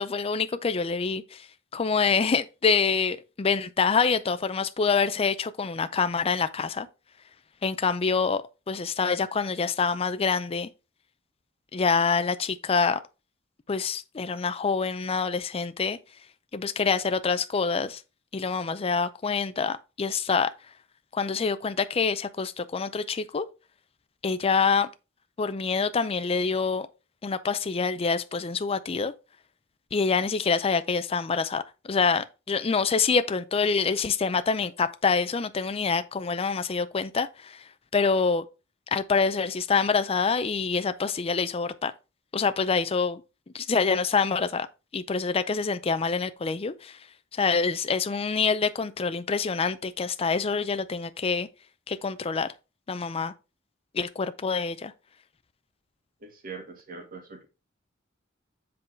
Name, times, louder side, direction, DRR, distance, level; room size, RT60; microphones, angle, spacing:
voice 1, 0.0-1.5 1.7-6.9 7.6-10.7 11.7-13.0 13.7-16.0 16.5-18.0 18.3-20.5 21.1-23.5 24.2-24.9 25.4-26.9 27.2-29.1 29.9-31.6 31.9-37.6 37.9-38.4 38.9-41.9 42.3-43.2 43.5-44.7 44.9-47.0 47.3-51.5 51.9-52.5 52.9-53.3 53.9-54.9, left 5 dB, 30° left, 0.4 m, -26 dB
voice 2, 56.2-57.5, right 4 dB, 45° right, 1.7 m, -42 dB
7.7 x 3.9 x 4.4 m
head